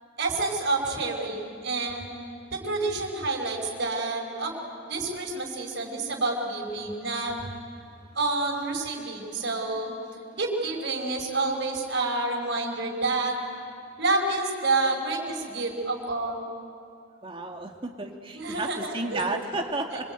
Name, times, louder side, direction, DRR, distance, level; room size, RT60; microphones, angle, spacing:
voice 1, 0.2-2.1 2.5-7.4 8.2-9.9 10.3-13.4 14.0-16.4 18.3-19.2, right 3 dB, 60° right, -1 dB, 5.4 m, -28 dB
voice 2, 17.2-20.1, right 2 dB, 25° right, 2 dB, 2.4 m, -32 dB
26.0 x 23.5 x 9.2 m, 2.3 s
head